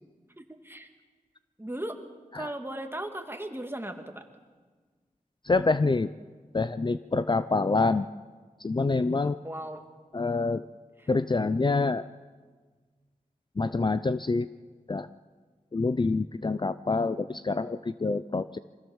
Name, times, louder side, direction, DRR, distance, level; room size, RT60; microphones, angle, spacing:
voice 1, 0.4-0.9 1.6-2.0 2.3-4.2 9.4-9.8 11.0-11.1, right 1 dB, 15° right, 5 dB, 2.2 m, -37 dB
voice 2, 5.4-6.1 6.5-8.1 8.6-9.4 10.1-10.6 11.1-12.0 13.6-14.5 14.9-15.1 15.7-18.6, left 3 dB, 35° left, 13 dB, 0.5 m, -26 dB
24.0 x 15.5 x 7.2 m, 1.5 s
wide cardioid pair, 50°, 14 cm